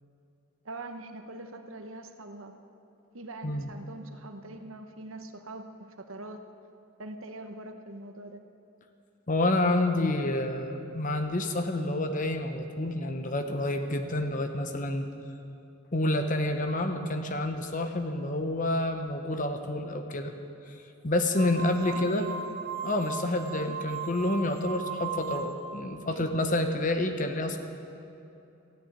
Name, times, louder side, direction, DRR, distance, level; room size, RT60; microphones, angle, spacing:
voice 1, 0.6-2.5 3.1-6.4 7.0-8.4 21.6-22.5 24.9-25.1 26.1-26.3, right 2 dB, 70° right, 6 dB, 1.0 m, -43 dB
voice 2, 9.3-15.0 15.9-20.3 21.0-22.2 22.8-27.6, left 1 dB, 35° left, 6 dB, 0.9 m, -28 dB
sound 1, 21.3-25.7, right 6 dB, 45° right, 1.5 m, -38 dB
14.0 x 6.9 x 9.4 m, 2.8 s
head